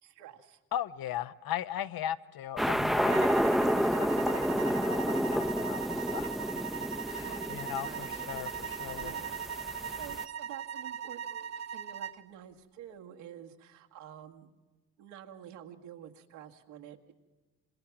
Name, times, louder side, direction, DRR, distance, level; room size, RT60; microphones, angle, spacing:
voice 1, 0.0-0.6 7.2-8.4 8.9-9.4 9.7-14.5 15.0-17.1, right 10 dB, 80° right, 2.1 m, -49 dB
voice 2, 0.7-3.3 3.7-6.3 7.0-9.1, left 11 dB, 60° left, 1.0 m, -38 dB
sound 1, 2.6-10.2, equal, ahead, 0.8 m, -30 dB
sound 2, 3.1-12.2, right 8 dB, 40° right, 1.2 m, -39 dB
26.5 x 26.0 x 6.0 m
supercardioid pair, 65°, 40 cm